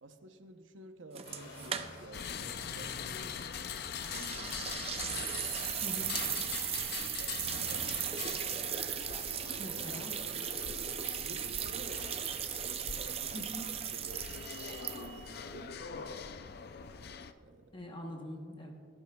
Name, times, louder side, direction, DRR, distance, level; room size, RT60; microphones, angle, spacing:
voice 1, 0.0-3.4 3.8-4.8 5.6-8.7 11.1-14.3 14.6-16.4 17.4-17.8, right 2 dB, 80° right, 7 dB, 0.8 m, -52 dB
sound 1, 1.2-17.8, left 1 dB, 90° left, 2.3 m, -57 dB
sound 2, 1.2-2.3 2.5-2.6 4.0-15.3, right 9 dB, 30° right, 0.5 m, -37 dB
sound 3, 2.1-17.3, left 6 dB, 55° left, 0.5 m, -43 dB
voice 2, 5.8-6.2 9.6-10.2 13.3-13.7 17.7-18.7, equal, 25° left, 1 dB, 1.0 m, -43 dB
18.0 x 11.0 x 2.3 m, 2.1 s
head